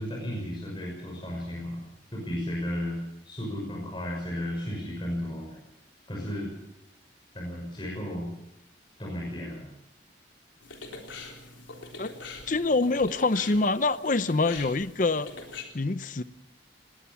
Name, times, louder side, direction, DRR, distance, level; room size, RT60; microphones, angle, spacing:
voice 1, 0.0-1.8 2.1-3.0 3.3-5.6 6.1-6.5 7.3-8.3 9.0-9.6, equal, 25° left, -3 dB, 6.0 m, -34 dB
sound 1, 10.6-15.6, left 3 dB, 80° left, 3.7 m, -43 dB
voice 2, 12.5-15.3 15.7-16.2, left 3 dB, 45° left, 14 dB, 0.7 m, -25 dB
20.0 x 18.5 x 7.1 m, 0.81 s
head